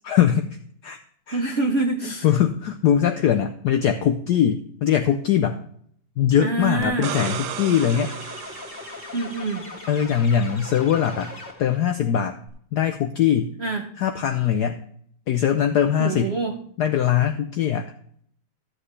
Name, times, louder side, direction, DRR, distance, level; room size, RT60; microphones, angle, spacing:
voice 1, 0.0-0.5 0.8-1.0 1.3-1.4 2.2-5.6 6.2-8.1 9.9-11.3 11.6-12.4 12.7-13.5 14.0-14.8 15.3-16.3 16.8-17.8, left 9 dB, 80° left, 6 dB, 0.9 m, -21 dB
voice 2, 1.3-2.3 6.4-7.2 9.1-9.6 13.6-13.9 16.0-16.5, right 3 dB, 90° right, 3 dB, 0.5 m, -25 dB
sound 1, 6.8-9.6 12.5-12.6, right 8 dB, 65° right, 1.1 m, -34 dB
sound 2, 7.7-11.9, left 2 dB, 20° left, 1.8 m, -39 dB
13.5 x 7.6 x 3.2 m, 0.63 s
omnidirectional pair, 2.4 m